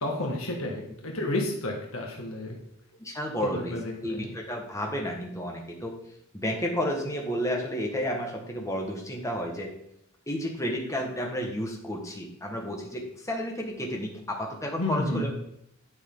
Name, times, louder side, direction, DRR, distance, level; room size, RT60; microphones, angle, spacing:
voice 1, 0.0-2.6 3.4-4.3 14.8-15.3, left 1 dB, 70° left, 0 dB, 1.6 m, -31 dB
voice 2, 3.0-3.8 4.0-5.9 6.3-9.7 10.3-15.3, equal, 15° left, 0 dB, 1.4 m, -31 dB
9.7 x 6.3 x 3.8 m, 0.74 s
head